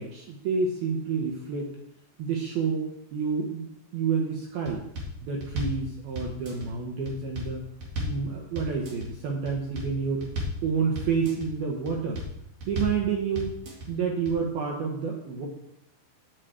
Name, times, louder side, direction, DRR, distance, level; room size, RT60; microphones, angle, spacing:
voice 1, 0.0-1.7 2.2-3.6 3.9-4.8 5.2-7.6 8.0-10.3 10.6-12.2 12.7-13.6 13.9-15.5, right 5 dB, 70° right, 0 dB, 2.4 m, -29 dB
sound 1, 4.7-5.1 5.4-5.8 6.2-6.7 7.1-7.5 7.8-8.2 8.6-9.1 9.5-9.9 10.2-10.6 11.0-11.5 11.9-12.3 12.6-13.0 13.4-13.9 14.3-14.4, left 1 dB, 50° right, 2.9 m, -33 dB
7.8 x 6.6 x 8.0 m, 0.77 s
omnidirectional pair, 5.5 m